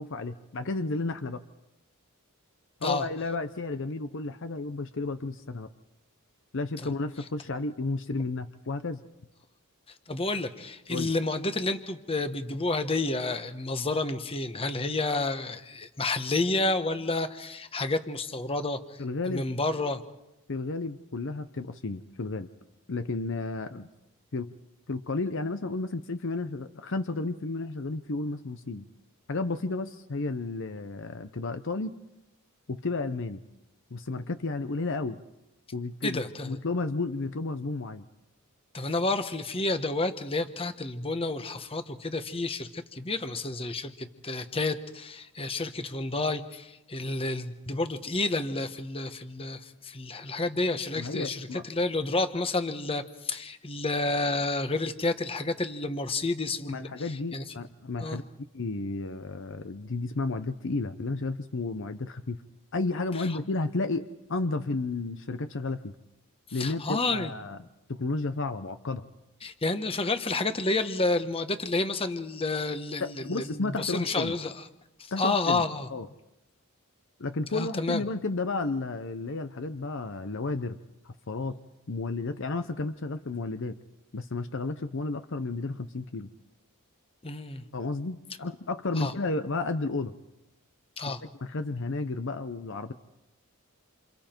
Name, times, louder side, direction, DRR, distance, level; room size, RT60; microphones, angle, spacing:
voice 1, 0.0-1.4 2.8-5.7 6.5-9.0 10.9-11.1 19.0-19.5 20.5-22.5 22.9-23.9 24.3-24.5 24.9-28.9 29.3-31.9 32.7-33.4 33.9-35.2 35.7-38.0 51.0-51.6 56.7-58.2 58.5-62.4 62.7-65.9 66.5-67.6 67.9-69.0 73.0-74.3 75.1-75.6 75.9-76.1 77.2-80.8 81.0-81.6 81.9-83.8 84.1-86.3 87.7-90.1 91.4-92.9, left 3 dB, 60° left, 10 dB, 0.8 m, -32 dB
voice 2, 10.1-20.0 36.0-36.6 38.7-57.4 58.0-58.2 63.2-63.4 66.5-67.3 69.4-74.5 75.0-75.9 77.5-78.0 87.2-87.6 89.0-89.1 91.0-91.2, left 2 dB, 25° left, 9 dB, 1.2 m, -30 dB
28.0 x 28.0 x 4.5 m, 0.94 s
head